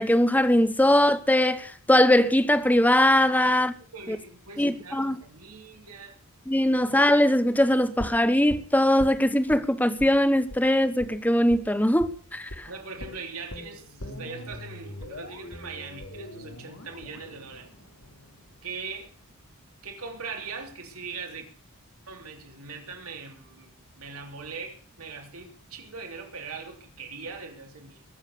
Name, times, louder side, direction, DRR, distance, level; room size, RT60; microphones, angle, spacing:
voice 1, 0.0-3.7 4.1-4.2 4.6-5.2 6.5-12.7, left 1 dB, 5° left, 1.0 m, -21 dB
voice 2, 3.3-6.2 12.7-17.7 18.6-19.1 19.8-21.5 22.1-28.0, right 4 dB, 80° right, 3.5 m, -41 dB
sound 1, 8.0-9.6 10.0-10.2 10.5-10.6 11.0-11.1 11.5-11.6 12.0-12.2 12.5-12.6 13.0-19.0 19.3-19.4, left 1 dB, 85° left, 3.3 m, -41 dB
22.0 x 7.4 x 6.7 m
head